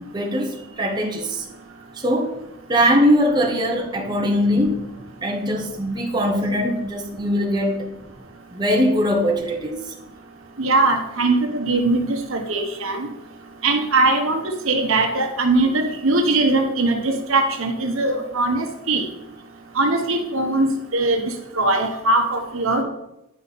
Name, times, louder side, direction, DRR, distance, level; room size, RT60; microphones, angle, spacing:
voice 1, 0.1-1.5 1.9-2.3 2.7-4.9 5.2-7.9 8.5-9.8, equal, 20° right, 1.1 m, -21 dB
voice 2, 10.6-13.1 13.6-14.4 14.7-19.1 19.7-20.7 20.9-22.8, right 2 dB, 70° right, 1.1 m, -20 dB
9.9 x 5.4 x 4.2 m
head